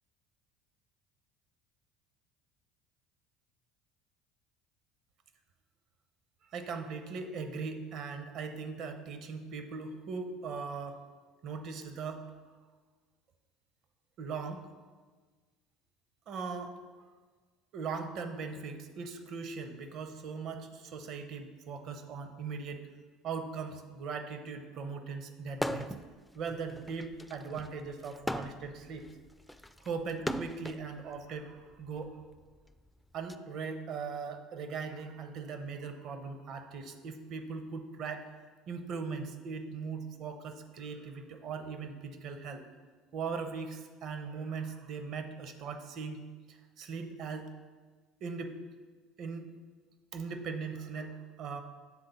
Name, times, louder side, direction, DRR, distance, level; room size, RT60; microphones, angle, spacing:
voice 1, 6.5-11.0 11.4-12.3 14.2-14.6 16.3-16.8 17.7-22.9 23.2-25.9 26.3-29.1 29.8-32.2 33.1-38.3 38.7-42.6 43.1-47.5 48.2-48.5 49.2-49.5 50.1-51.6, right 5 dB, 55° right, 7 dB, 0.7 m, -39 dB
sound 1, 25.5-26.1 26.4-30.8 31.7-33.3, equal, 5° left, 0.3 m, -38 dB
7.4 x 3.8 x 5.5 m, 1.4 s
hypercardioid pair, 70°, 0 cm